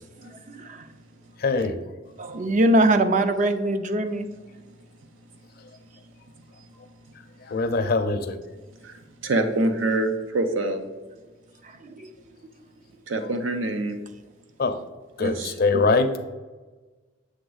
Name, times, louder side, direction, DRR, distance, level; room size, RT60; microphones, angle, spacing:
voice 1, 0.2-0.9 2.2-4.3 11.6-12.1, right 1 dB, 40° right, 0.5 m, -23 dB
voice 2, 1.4-1.8 7.4-8.4 14.6-14.8 15.2-16.2, left 3 dB, 55° left, 0.5 m, -23 dB
voice 3, 9.2-10.8 13.1-14.0 15.2-15.8, right 2 dB, 80° right, 0.7 m, -25 dB
7.1 x 3.4 x 3.9 m
head